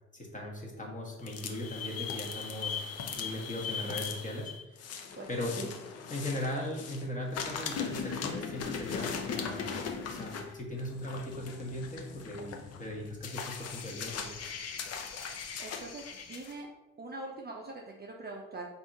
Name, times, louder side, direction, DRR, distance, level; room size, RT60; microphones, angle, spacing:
voice 1, 0.1-2.8 3.1-4.9 5.3-5.7 6.1-14.3, left 1 dB, 20° left, -1 dB, 1.2 m, -38 dB
sound 1, 1.2-7.0 7.3-16.5, left 6 dB, 40° left, 0.6 m, -39 dB
voice 2, 15.6-16.7 17.0-18.7, right 2 dB, 25° right, -1 dB, 0.6 m, -43 dB
3.4 x 2.6 x 4.2 m, 0.96 s
hypercardioid pair, 55°, 38 cm